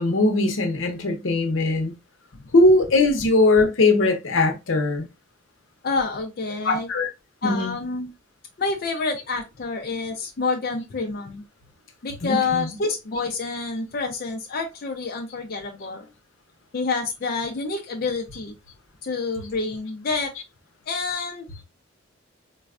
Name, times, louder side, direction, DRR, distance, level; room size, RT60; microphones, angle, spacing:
voice 1, 0.0-1.9 2.5-5.1 6.6-7.1 7.4-7.8 12.2-12.7, left 2 dB, 80° left, 0.7 m, -20 dB
voice 2, 5.8-6.9 7.4-8.1 8.6-11.4 12.0-16.1 16.7-18.5 19.0-20.3 20.9-21.5, left 4 dB, 50° left, 0.4 m, -28 dB
4.0 x 2.3 x 2.4 m
head